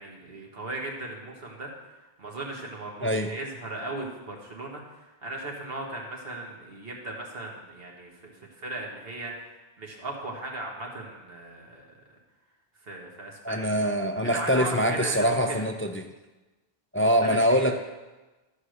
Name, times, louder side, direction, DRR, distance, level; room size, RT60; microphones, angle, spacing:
voice 1, 0.0-1.7 2.2-9.5 9.8-12.0 12.8-13.7 14.2-15.7 17.2-17.8, right 2 dB, 70° right, 0 dB, 1.8 m, -37 dB
voice 2, 13.4-16.1 16.9-17.7, equal, 20° left, 6 dB, 0.3 m, -24 dB
13.0 x 4.9 x 6.5 m, 1.2 s
omnidirectional pair, 1.0 m